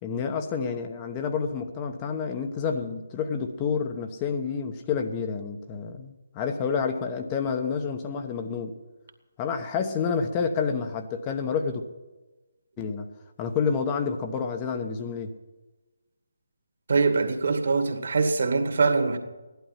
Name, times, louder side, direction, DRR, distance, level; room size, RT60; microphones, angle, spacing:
voice 1, 0.0-8.7 9.4-11.8 12.8-13.1 13.4-15.3, left 6 dB, 20° left, 1.0 m, -29 dB
voice 2, 16.9-19.2, right 4 dB, 55° right, 2.1 m, -23 dB
17.0 x 11.5 x 5.8 m
figure-of-eight pair, 150°, 0 cm